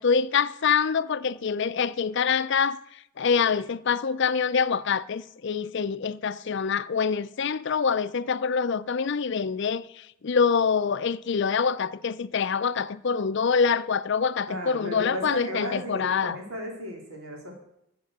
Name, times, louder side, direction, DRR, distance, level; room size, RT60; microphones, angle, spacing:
voice 1, 0.0-2.8 3.2-16.4, left 6 dB, 55° left, 0.5 m, -25 dB
voice 2, 14.5-17.6, equal, 85° right, 3.7 m, -35 dB
14.0 x 7.5 x 6.6 m
head